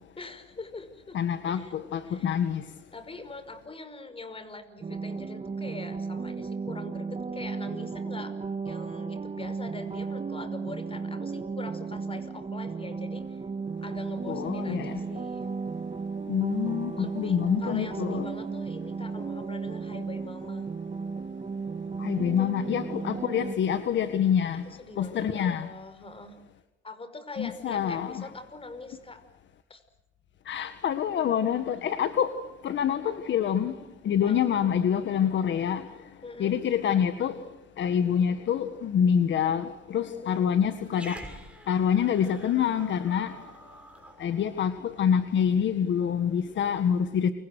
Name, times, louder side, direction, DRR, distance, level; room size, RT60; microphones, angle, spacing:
voice 1, 0.2-1.2 1.5-1.7 2.0-2.4 2.9-13.4 13.8-15.5 17.0-20.7 22.4-22.5 24.5-26.4 26.8-29.2 29.7-29.8 34.2-34.6 36.2-36.6 40.2-40.5, left 3 dB, 30° left, 5.3 m, -43 dB
voice 2, 1.1-2.6 14.3-15.0 16.3-18.2 22.0-24.6 25.0-25.7 27.4-28.3 30.5-32.3 32.6-33.8 34.0-35.9 36.4-37.4 37.8-41.2 41.7-43.3 44.2-47.3, left 8 dB, 65° left, 1.8 m, -26 dB
sound 1, 4.8-23.6, right 4 dB, 30° right, 2.1 m, -34 dB
Growling, 40.9-45.5, right 1 dB, 5° right, 6.4 m, -48 dB
29.0 x 25.0 x 6.4 m
cardioid pair, 90°, 20 cm